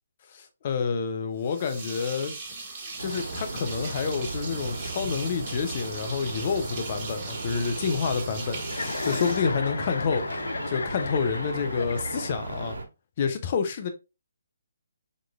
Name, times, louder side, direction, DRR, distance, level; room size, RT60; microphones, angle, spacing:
voice 1, 0.3-2.3 3.0-10.2 10.7-12.8 13.2-13.9, left 6 dB, 40° left, 1.0 m, -28 dB
sound 1, 1.4-10.2, right 3 dB, 30° right, 1.8 m, -39 dB
sound 2, 3.0-12.8, right 3 dB, 70° right, 1.3 m, -36 dB
Chuckle chortle, 8.6-12.7, left 4 dB, 70° left, 0.5 m, -34 dB
5.4 x 3.7 x 2.2 m
figure-of-eight pair, 145°, 0 cm